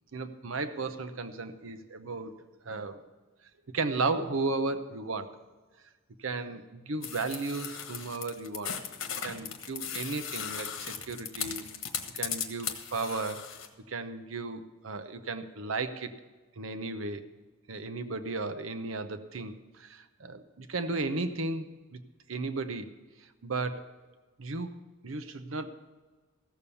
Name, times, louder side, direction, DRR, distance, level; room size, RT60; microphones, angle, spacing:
voice 1, 0.1-3.0 3.7-5.3 6.2-8.7 9.2-11.6 12.1-13.4 13.9-16.1 16.6-17.2 17.7-22.0 22.3-22.9 23.4-23.8 24.4-24.7 25.0-25.7, right 3 dB, 75° right, 10 dB, 0.8 m, -34 dB
sound 1, 7.0-13.7, left 8 dB, 70° left, 1.3 m, -37 dB
15.0 x 7.0 x 6.9 m, 1.3 s
head